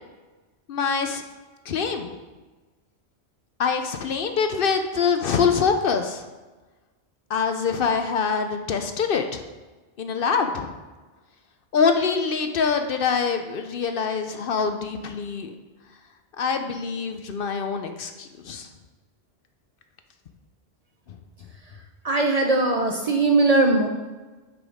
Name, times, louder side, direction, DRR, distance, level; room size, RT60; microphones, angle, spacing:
voice 1, 0.7-1.2 1.7-2.1 3.6-6.3 7.3-9.4 10.0-10.8 11.7-15.5 16.4-18.7, left 5 dB, 60° left, 6 dB, 0.7 m, -24 dB
voice 2, 22.0-23.9, right 2 dB, 45° right, 2 dB, 0.6 m, -20 dB
6.0 x 5.2 x 4.8 m, 1.2 s
omnidirectional pair, 1.1 m